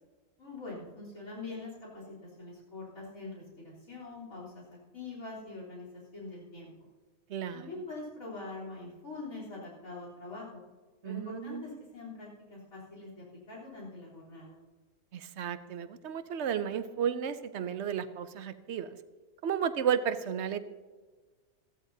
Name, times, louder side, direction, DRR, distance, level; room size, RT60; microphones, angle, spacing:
voice 1, 0.4-6.7 7.5-10.6 11.0-14.6, left 3 dB, 85° left, -4 dB, 4.1 m, -44 dB
voice 2, 7.3-7.7 11.0-11.6 15.1-18.9 19.4-20.6, right 8 dB, 60° right, 12 dB, 0.9 m, -33 dB
16.5 x 14.5 x 2.7 m, 1.4 s
omnidirectional pair, 1.4 m